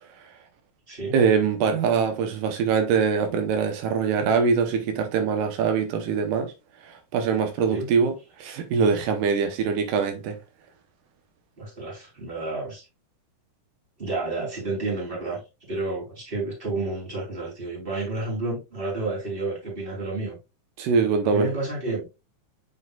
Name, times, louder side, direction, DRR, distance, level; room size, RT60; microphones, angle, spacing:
voice 1, 1.1-6.5 6.8-10.4 20.8-21.5, right 6 dB, 85° right, 2.6 m, -23 dB
voice 2, 11.6-12.8 14.0-15.4 15.7-20.4 21.2-22.1, right 2 dB, 15° right, 3.4 m, -30 dB
7.7 x 5.6 x 2.3 m
omnidirectional pair, 3.7 m